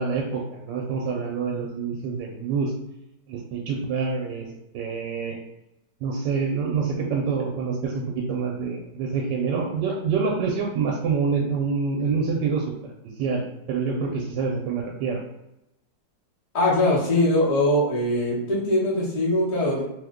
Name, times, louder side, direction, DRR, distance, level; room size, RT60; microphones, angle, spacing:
voice 1, 0.0-2.7 3.3-4.5 4.7-5.4 6.0-12.6 13.2-13.4 13.7-15.2, right 5 dB, 80° right, 0 dB, 1.2 m, -26 dB
voice 2, 16.5-19.8, left 1 dB, 30° left, -5 dB, 0.6 m, -22 dB
3.0 x 2.1 x 3.5 m, 0.85 s
omnidirectional pair, 1.9 m